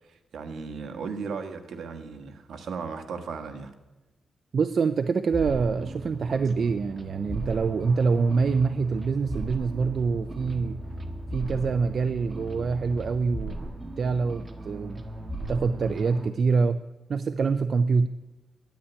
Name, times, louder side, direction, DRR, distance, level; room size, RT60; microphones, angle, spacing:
voice 1, 0.1-3.7, right 5 dB, 70° right, 6 dB, 1.5 m, -36 dB
voice 2, 4.5-10.8 11.3-13.7 14.0-15.0 15.5-16.8 17.1-18.1, right 5 dB, 45° right, 11 dB, 0.4 m, -25 dB
sound 1, 5.3-16.3, right 1 dB, 20° right, 1.2 m, -37 dB
10.5 x 9.6 x 9.9 m, 1.1 s
wide cardioid pair, 160°, 0 cm